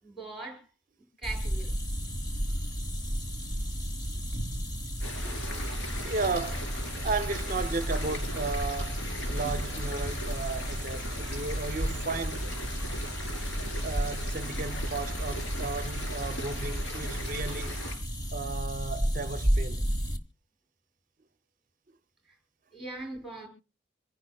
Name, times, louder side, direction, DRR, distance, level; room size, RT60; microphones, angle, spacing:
voice 1, 0.0-0.7 1.2-1.7 22.7-23.5, right 3 dB, ahead, 6.3 m, -40 dB
sound 1, 1.2-20.2, equal, 20° left, 1.2 m, -33 dB
sound 2, 5.0-17.9, equal, 75° left, 4.4 m, -38 dB
voice 2, 6.0-6.7 7.0-12.5 13.8-17.9 18.3-19.8, right 4 dB, 45° right, 0.6 m, -35 dB
27.0 x 10.5 x 2.3 m
head